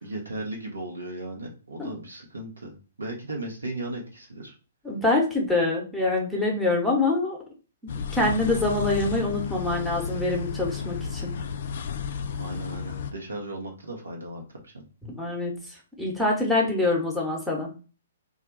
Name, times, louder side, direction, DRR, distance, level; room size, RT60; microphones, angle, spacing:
voice 1, 0.0-4.5 12.4-14.8, right 1 dB, 75° right, 1 dB, 1.0 m, -36 dB
voice 2, 4.8-7.4 7.8-11.3 15.0-15.5 16.0-17.7, left 2 dB, ahead, -3 dB, 0.9 m, -25 dB
sound 1, 7.9-13.1, left 6 dB, 50° left, 0.3 m, -32 dB
2.6 x 2.2 x 4.0 m, 0.35 s
figure-of-eight pair, 120°, 0 cm